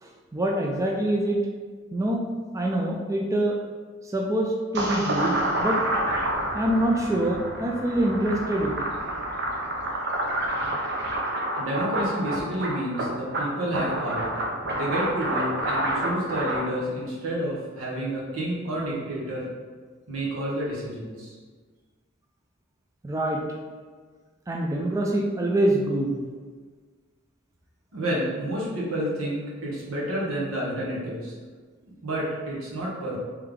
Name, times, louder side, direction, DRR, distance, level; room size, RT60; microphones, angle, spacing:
voice 1, 0.0-1.4 1.9-2.3 2.5-3.6 4.1-5.8 6.5-8.7 23.0-23.4 24.5-26.2, right 1 dB, 15° right, -1 dB, 0.3 m, -25 dB
sound 1, 4.7-16.6, right 1 dB, 55° right, 0.6 m, -28 dB
voice 2, 11.6-14.3 14.7-19.5 20.1-21.4 27.9-31.3 32.0-33.2, right 1 dB, 85° right, -5 dB, 1.3 m, -30 dB
3.5 x 3.3 x 3.5 m, 1.5 s
head